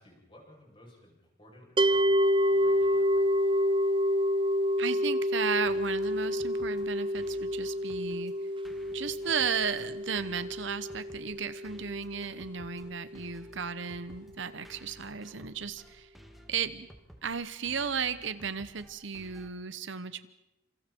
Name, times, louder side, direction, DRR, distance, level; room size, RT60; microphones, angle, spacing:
voice 1, 0.0-3.9, left 1 dB, 25° left, -2 dB, 8.0 m, -56 dB
sound 1, 1.8-12.9, equal, 25° right, 0.7 m, -28 dB
voice 2, 4.8-8.3 8.9-16.1 16.5-16.9 17.2-20.3, right 6 dB, 60° right, 13 dB, 1.0 m, -34 dB
sound 2, 5.6-19.5, equal, ahead, 2.2 m, -55 dB
29.0 x 27.5 x 4.5 m, 0.90 s
head